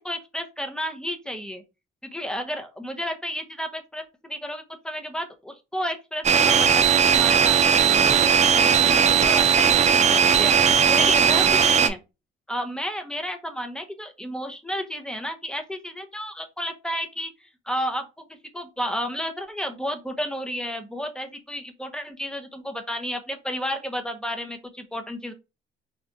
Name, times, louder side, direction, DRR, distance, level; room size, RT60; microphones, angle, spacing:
voice 1, 0.0-1.6 2.0-10.5 10.9-12.0 12.5-18.1 18.5-25.3, equal, 5° left, 6 dB, 0.7 m, -32 dB
sound 1, 6.2-11.9, right 7 dB, 35° right, 0.4 m, -18 dB
4.1 x 2.3 x 2.6 m, 0.26 s
cardioid pair, 90°, 20 cm